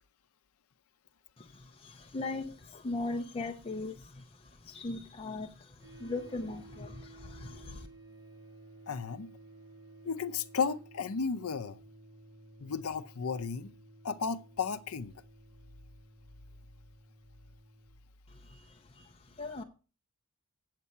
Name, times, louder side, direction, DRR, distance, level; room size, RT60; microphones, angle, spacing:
voice 1, 1.4-7.9 18.3-19.6, left 2 dB, 25° left, 0.6 m, -40 dB
sound 1, 5.8-17.9, right 2 dB, 15° right, 6.5 m, -55 dB
voice 2, 8.9-9.3 10.0-11.8 12.6-13.7 14.0-15.1, left 5 dB, 70° left, 0.6 m, -34 dB
8.5 x 7.5 x 5.5 m
head